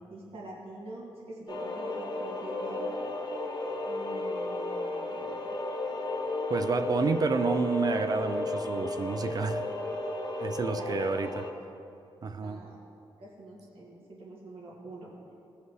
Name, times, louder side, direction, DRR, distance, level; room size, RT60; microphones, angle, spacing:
voice 1, 0.1-3.1 3.9-5.6 10.6-11.5 12.4-12.8 13.2-15.1, right 2 dB, 75° right, -5 dB, 2.0 m, -45 dB
sound 1, 1.5-11.5, left 2 dB, 50° left, 1.0 m, -33 dB
voice 2, 6.5-9.6 10.4-11.4 12.2-12.6, right 4 dB, 40° right, 9 dB, 0.4 m, -30 dB
16.5 x 5.7 x 3.1 m, 2.7 s
cardioid pair, 110°, 10 cm